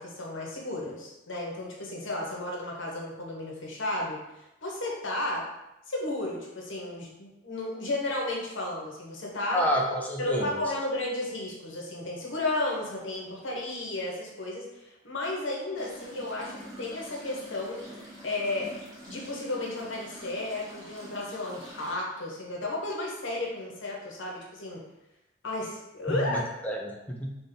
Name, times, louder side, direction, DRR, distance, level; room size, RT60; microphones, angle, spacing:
voice 1, 0.0-5.4 5.9-9.6 10.2-18.8 19.1-24.8 25.4-26.4, left 2 dB, 85° left, -2 dB, 1.0 m, -33 dB
voice 2, 9.5-10.6 26.1-27.4, equal, 10° left, -1 dB, 0.3 m, -29 dB
sound 1, 15.7-21.9, equal, 20° right, 1.1 m, -46 dB
3.5 x 2.4 x 3.8 m, 0.93 s
head